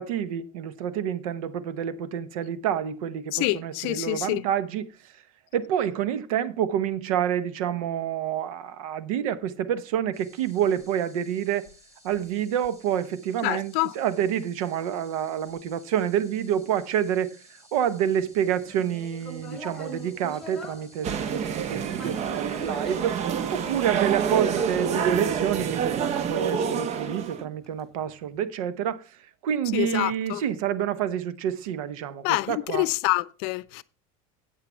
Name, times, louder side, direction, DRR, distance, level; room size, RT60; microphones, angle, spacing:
voice 1, 0.0-5.1 5.5-11.7 12.0-17.4 17.7-32.9, right 9 dB, 80° right, 0.9 m, -28 dB
voice 2, 3.3-4.4 13.4-13.9 29.7-30.4 32.2-33.8, left 21 dB, 65° left, 0.6 m, -26 dB
sound 1, 10.1-25.5, equal, 20° right, 6.0 m, -55 dB
Human voice, 18.6-26.0 26.6-28.0, equal, 5° left, 2.7 m, -42 dB
sound 2, 21.0-27.4, right 7 dB, 40° right, 0.8 m, -28 dB
8.6 x 8.4 x 4.4 m
supercardioid pair, 120°, 18 cm